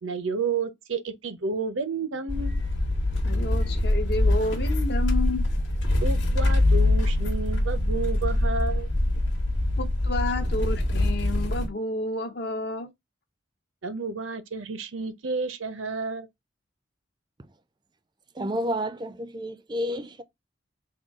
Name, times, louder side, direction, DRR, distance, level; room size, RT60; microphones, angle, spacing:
voice 1, 0.0-2.6 6.0-8.9 13.8-16.3, right 4 dB, 85° right, 0.7 m, -31 dB
sound 1, 2.3-11.7, left 1 dB, 70° left, 1.0 m, -24 dB
voice 2, 3.2-5.5 9.8-12.9, left 2 dB, 55° left, 0.7 m, -30 dB
voice 3, 18.4-20.2, equal, 20° right, 0.4 m, -30 dB
3.7 x 2.3 x 3.4 m
head